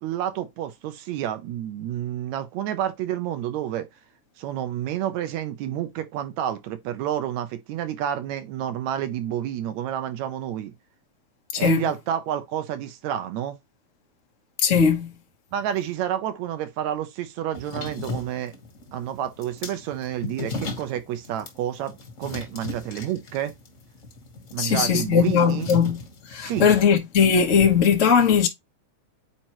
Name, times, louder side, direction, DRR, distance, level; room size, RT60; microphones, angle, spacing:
voice 1, 0.0-3.9 4.4-10.7 11.6-13.6 15.5-18.5 18.9-23.5 24.5-25.7 26.3-26.7, right 11 dB, 75° right, 2.0 m, -29 dB
voice 2, 11.5-11.9 14.6-15.1 24.6-26.0 26.3-28.5, left 6 dB, 80° left, 0.6 m, -19 dB
sound 1, 17.5-26.8, left 3 dB, 40° left, 1.1 m, -37 dB
9.0 x 4.4 x 3.0 m
omnidirectional pair, 3.4 m